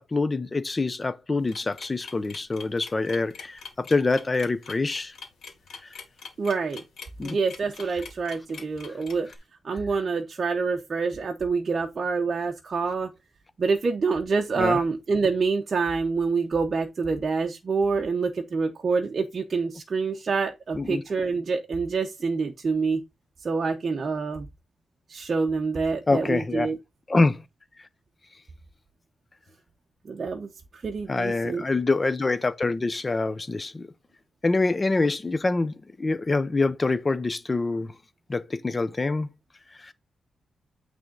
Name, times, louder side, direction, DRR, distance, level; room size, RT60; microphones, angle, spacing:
voice 1, 0.0-5.1 7.2-7.4 14.6-14.8 20.8-21.0 26.1-26.7 27.1-27.4 31.1-33.9 34.4-37.9 38.3-39.3 39.8-39.9, left 3 dB, 20° left, 0.5 m, -25 dB
sound 1, 1.5-9.4, left 5 dB, 65° left, 2.1 m, -43 dB
voice 2, 6.4-6.8 7.2-9.3 9.6-13.1 13.6-23.0 23.4-24.5 25.1-26.8 30.1-31.6, right 4 dB, 35° right, 0.8 m, -26 dB
9.2 x 3.5 x 3.8 m
wide cardioid pair, 180°, 0 cm